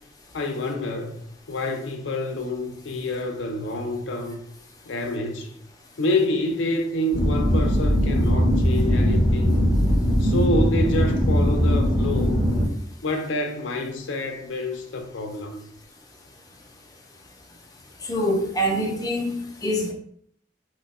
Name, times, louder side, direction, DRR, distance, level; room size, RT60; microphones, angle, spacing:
voice 1, 0.3-1.2 1.5-4.4 4.9-5.5 6.0-9.6 10.2-12.4 13.0-15.6, left 1 dB, 75° left, 0.5 m, -27 dB
sound 1, 7.1-12.7, equal, 55° right, 1.3 m, -20 dB
voice 2, 18.0-19.9, equal, 20° left, 0.5 m, -25 dB
2.9 x 2.2 x 4.1 m
head